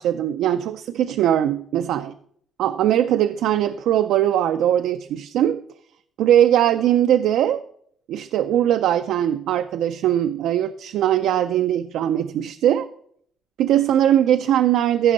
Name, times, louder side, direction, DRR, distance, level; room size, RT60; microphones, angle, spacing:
voice 1, 0.0-2.1 2.6-5.6 6.2-7.6 8.1-12.9 13.6-15.1, right 11 dB, 85° right, 8 dB, 0.4 m, -20 dB
15.0 x 5.5 x 4.0 m, 0.65 s
cardioid pair, 90°, 0 cm